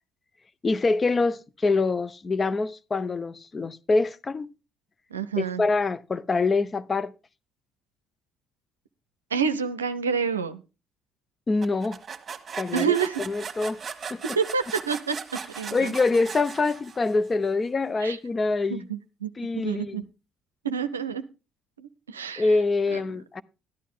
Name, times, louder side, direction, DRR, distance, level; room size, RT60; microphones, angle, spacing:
voice 1, 0.6-4.5 5.4-7.1 11.5-12.0 12.6-13.0 13.3-13.8 14.1-14.2 15.7-18.9 19.4-20.0 22.4-23.4, left 3 dB, 30° left, 0.7 m, -25 dB
voice 2, 5.1-5.6 9.3-10.6 12.7-13.2 14.3-15.9 18.0-18.2 18.7-20.0 20.6-21.2 21.8-22.5 22.9-23.0, right 6 dB, 90° right, 0.5 m, -28 dB
sound 1, 11.6-17.3, right 6 dB, 40° right, 1.4 m, -38 dB
13.0 x 11.0 x 3.7 m
hypercardioid pair, 50°, 0 cm